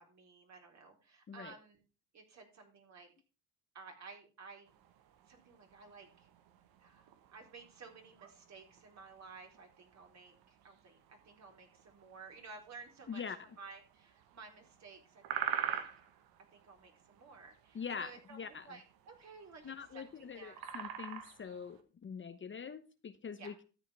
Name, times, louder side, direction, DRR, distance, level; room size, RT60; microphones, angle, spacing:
voice 1, 0.0-1.8 2.1-3.1 3.7-4.8 5.3-6.3 6.8-15.9 16.5-20.6 23.4-23.6, right 4 dB, 45° right, 2 dB, 4.1 m, -55 dB
sound 1, 4.7-21.8, right 10 dB, 75° right, 1.4 m, -47 dB
voice 2, 17.7-18.7 19.6-23.6, left 6 dB, 30° left, 10 dB, 1.0 m, -44 dB
13.0 x 8.4 x 3.5 m, 0.34 s
supercardioid pair, 90°, 37 cm